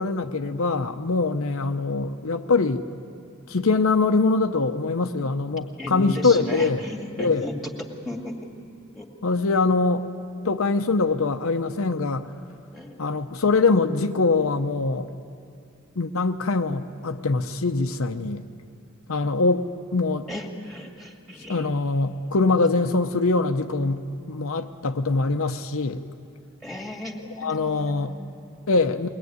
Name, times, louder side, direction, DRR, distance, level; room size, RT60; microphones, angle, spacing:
voice 1, 0.0-2.9 3.5-6.8 7.2-7.5 9.2-10.0 10.4-12.3 13.0-15.1 16.0-18.5 19.1-19.7 19.9-20.3 21.5-26.0 27.4-28.2 28.7-29.1, left 3 dB, 75° left, 0.8 m, -23 dB
voice 2, 5.8-8.3 8.9-9.1 12.7-13.1 20.3-21.8 26.6-28.6, left 1 dB, ahead, 2.3 m, -35 dB
22.5 x 19.5 x 9.5 m
head